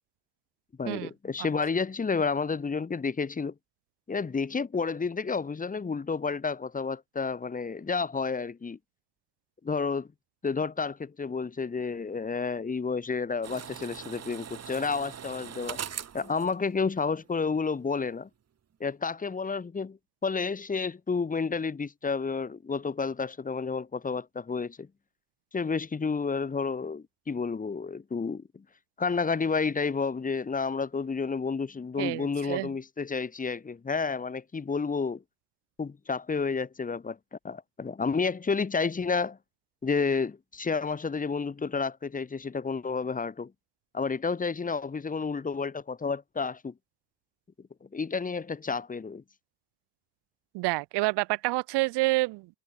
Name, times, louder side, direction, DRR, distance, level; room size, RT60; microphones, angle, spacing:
voice 1, 0.8-3.5 4.1-8.8 9.6-10.1 10.4-15.8 16.1-18.3 18.8-24.9 25.5-28.6 29.0-35.2 35.8-39.4 39.8-43.5 43.9-46.7 47.8-49.2, left 5 dB, 20° left, 2.2 m, -30 dB
sound 1, 13.4-17.5 17.7-17.8, right 8 dB, 40° right, 7.2 m, -41 dB
voice 2, 32.0-32.7 50.5-52.5, right 21 dB, 75° right, 0.6 m, -28 dB
cardioid pair, 155°, 41 cm